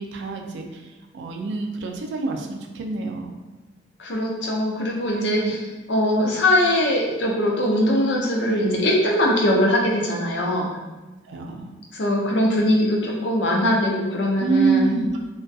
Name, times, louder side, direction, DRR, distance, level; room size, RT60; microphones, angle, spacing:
voice 1, 0.0-3.4 5.2-5.6 8.4-8.9 11.3-11.7 14.4-15.1, right 4 dB, 75° right, 3 dB, 0.3 m, -26 dB
voice 2, 4.0-5.6 5.9-10.8 11.9-15.0, left 1 dB, 75° left, -2 dB, 0.5 m, -21 dB
2.3 x 2.2 x 2.6 m, 1.2 s
head